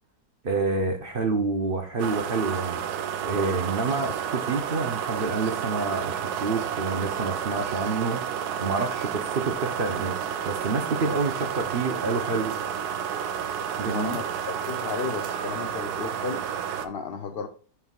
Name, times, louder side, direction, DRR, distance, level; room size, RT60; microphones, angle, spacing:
voice 1, 0.4-2.8 3.2-8.3 8.6-12.6 13.8-14.2, right 4 dB, 45° right, 0.8 m, -28 dB
sound 1, 2.0-16.9, right 8 dB, 80° right, 1.2 m, -31 dB
voice 2, 13.9-16.4 16.8-17.5, left 5 dB, 70° left, 0.5 m, -34 dB
11.5 x 4.6 x 2.4 m
omnidirectional pair, 1.7 m